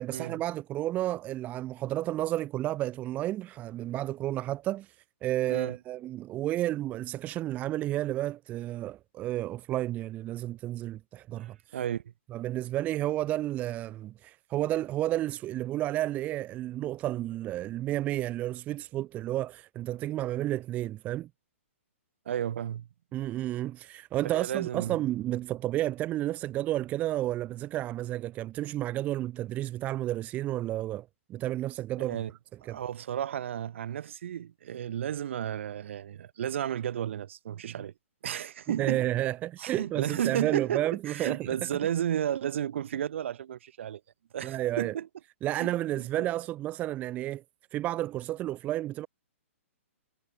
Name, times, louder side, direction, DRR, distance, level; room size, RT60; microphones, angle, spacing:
voice 1, 0.0-4.9 5.2-11.6 12.3-21.3 23.1-32.2 32.7-32.8 38.8-41.5 44.4-44.9 45.4-47.4 47.7-49.1, right 14 dB, 20° right, 0.9 m, -31 dB
voice 2, 11.4-12.1 22.3-22.9 24.3-25.0 32.0-32.3 32.6-37.9 38.2-39.1 39.6-44.0 44.3-45.1 45.5-46.3, right 10 dB, 60° right, 2.5 m, -33 dB
hypercardioid pair, 145°, 7 cm